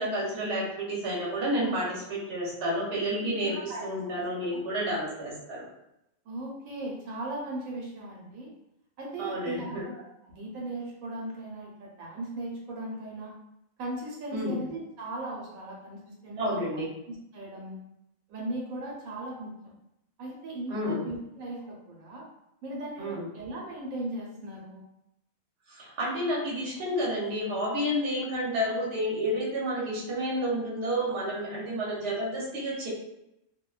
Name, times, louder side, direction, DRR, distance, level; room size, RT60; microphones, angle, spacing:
voice 1, 0.0-5.7 9.2-9.9 14.3-14.6 16.4-16.9 20.7-21.0 23.0-23.3 25.7-32.9, equal, 55° right, -5 dB, 1.0 m, -30 dB
voice 2, 3.2-4.2 4.5-4.6 6.2-8.5 9.0-13.3 13.8-17.8 18.3-19.7 20.2-22.2 22.6-24.8 28.6-28.8, right 1 dB, 80° right, -3 dB, 1.1 m, -38 dB
2.5 x 2.1 x 2.3 m, 0.84 s
omnidirectional pair, 1.4 m